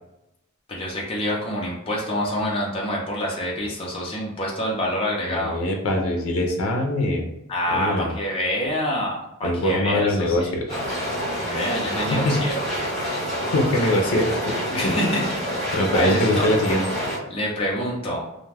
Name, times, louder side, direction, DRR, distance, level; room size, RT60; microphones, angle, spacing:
voice 1, 0.7-5.6 7.5-10.8 11.3-12.5 14.7-15.3 15.6-16.5 17.3-18.2, equal, 25° left, -3 dB, 0.6 m, -27 dB
voice 2, 5.3-7.3 7.7-8.1 9.4-10.6 12.1-12.4 13.5-14.5 14.8-15.1 15.7-17.0, left 1 dB, 85° left, 2 dB, 0.5 m, -23 dB
sound 1, 10.7-17.2, equal, ahead, 1.0 m, -27 dB
2.5 x 2.3 x 3.2 m, 0.86 s
head